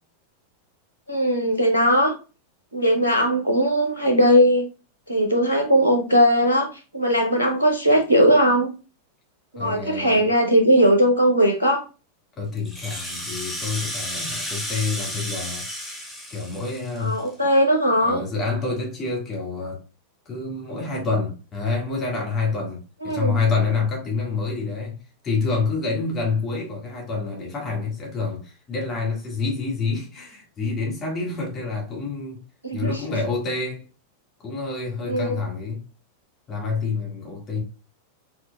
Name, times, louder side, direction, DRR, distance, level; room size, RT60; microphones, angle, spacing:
voice 1, 1.1-2.1 2.7-4.6 5.1-6.7 6.9-8.7 9.5-11.8 17.0-18.2 23.0-23.4 32.6-33.0 35.0-35.4, equal, 80° right, 0.7 m, -19 dB
voice 2, 9.6-10.3 12.4-15.6 16.3-17.2 18.0-19.8 20.3-22.8 23.0-25.0 25.2-32.4 32.7-33.8 34.4-35.8 36.5-37.6, left 4 dB, 25° left, 1.7 m, -27 dB
Rattle (instrument), 12.6-17.3, equal, ahead, 1.2 m, -32 dB
4.4 x 4.3 x 2.2 m
figure-of-eight pair, 90°, 0 cm